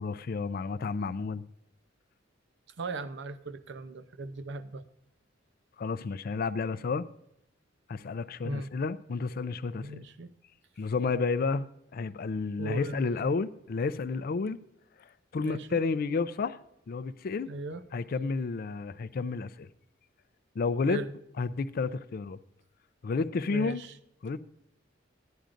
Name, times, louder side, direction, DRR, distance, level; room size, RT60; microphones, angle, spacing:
voice 1, 0.0-1.4 5.8-7.1 7.9-10.0 10.8-14.6 15.3-16.6 16.9-17.5 17.9-19.7 20.6-21.0 21.4-22.4 23.0-23.8 24.2-24.4, left 4 dB, 50° left, 0.4 m, -31 dB
voice 2, 2.8-4.8 8.4-8.7 9.8-10.3 12.6-13.3 15.4-15.8 17.5-17.8 20.9-21.1 23.5-23.9, right 3 dB, 65° right, 0.6 m, -38 dB
15.5 x 10.0 x 2.5 m
head